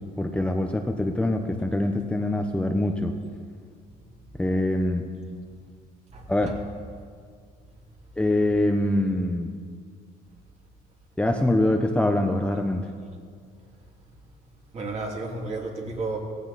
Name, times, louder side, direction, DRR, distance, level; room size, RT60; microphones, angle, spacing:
voice 1, 0.2-3.1 4.4-5.0 6.3-6.6 8.2-9.5 11.2-12.8, left 1 dB, 5° left, 4 dB, 0.8 m, -24 dB
voice 2, 6.1-6.6 14.7-16.2, right 3 dB, 40° right, 0 dB, 2.8 m, -32 dB
16.5 x 15.0 x 4.2 m, 2.1 s
cardioid pair, 110°, 17 cm